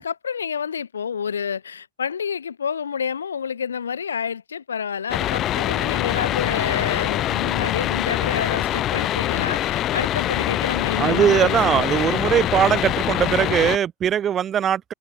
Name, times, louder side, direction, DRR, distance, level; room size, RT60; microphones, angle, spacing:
voice 1, 0.0-12.2, left 7 dB, 70° left, 2.2 m, -29 dB
sound 1, 5.1-13.8, left 13 dB, 35° left, 3.2 m, -24 dB
voice 2, 11.0-14.9, right 9 dB, 25° right, 1.9 m, -20 dB
figure-of-eight pair, 90°, 0 cm